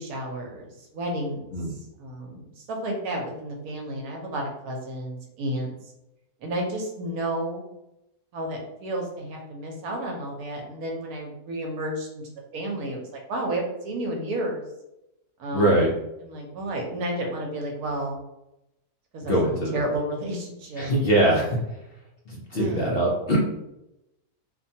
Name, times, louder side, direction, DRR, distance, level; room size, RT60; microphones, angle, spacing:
voice 1, 0.0-1.5 2.0-5.7 6.4-7.7 8.3-12.2 12.5-14.6 15.4-15.9 16.2-18.2 19.1-20.9 22.5-22.9, right 1 dB, 75° right, 0 dB, 1.1 m, -31 dB
voice 2, 15.5-15.9 19.3-19.8 20.8-21.5 22.5-23.5, right 1 dB, 65° left, -4 dB, 0.6 m, -22 dB
2.8 x 2.2 x 2.6 m, 0.88 s
omnidirectional pair, 1.6 m